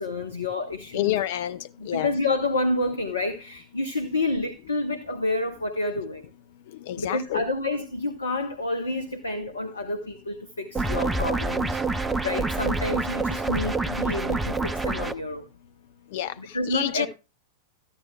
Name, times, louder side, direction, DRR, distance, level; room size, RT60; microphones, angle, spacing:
voice 1, 0.0-1.2 1.8-6.3 7.0-15.5 16.5-17.1, left 2 dB, 75° left, 1.0 m, -29 dB
voice 2, 0.9-2.1 6.7-7.4 16.1-17.1, left 13 dB, 50° left, 0.4 m, -29 dB
sound 1, 10.8-15.1, right 3 dB, 10° right, 0.6 m, -27 dB
13.5 x 10.0 x 2.3 m
figure-of-eight pair, 90°, 0 cm